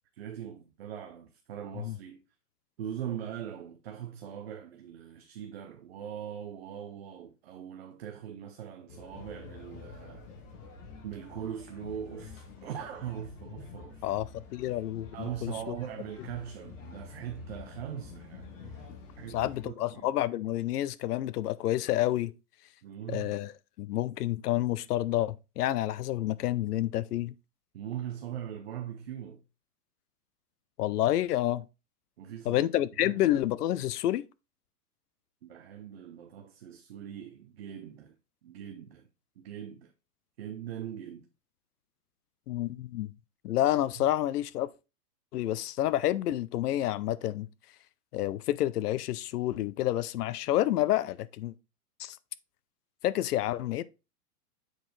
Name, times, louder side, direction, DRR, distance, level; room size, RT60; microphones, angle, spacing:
voice 1, 0.2-2.2 2.8-10.3 11.0-14.0 15.1-18.9 19.2-20.2 22.8-23.4 27.7-29.4 32.2-32.7 33.0-33.2 35.4-38.1 38.4-39.1 39.4-39.9 40.4-41.3 44.0-44.1, right 9 dB, 40° right, 0.6 m, -41 dB
sound 1, 8.9-19.7, left 5 dB, 50° left, 2.1 m, -48 dB
voice 2, 14.5-15.8 19.3-22.3 23.1-23.5 23.8-27.3 30.8-31.6 32.5-34.2 42.5-43.1 43.4-44.7 45.3-47.5 48.1-51.5 52.0-52.2 53.0-53.8, left 14 dB, 75° left, 0.6 m, -29 dB
7.8 x 4.5 x 3.2 m
supercardioid pair, 175°, 47 cm